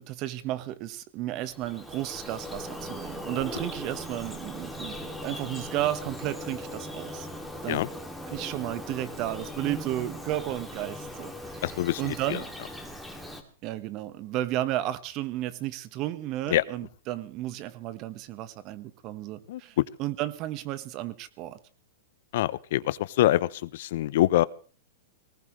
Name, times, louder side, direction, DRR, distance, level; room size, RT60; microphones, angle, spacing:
voice 1, 0.0-7.3 7.6-7.8 8.3-11.6 12.0-12.5 13.6-21.6, right 14 dB, 40° right, 13 dB, 1.4 m, -33 dB
Bird vocalization bird call bird song, 1.4-13.4, equal, ahead, 2.7 m, -39 dB
voice 2, 11.6-12.4 16.5-16.6 19.5-19.6 22.3-24.4, left 14 dB, 65° left, 19 dB, 0.8 m, -25 dB
19.5 x 19.0 x 3.3 m, 0.39 s
hypercardioid pair, 135°, 0 cm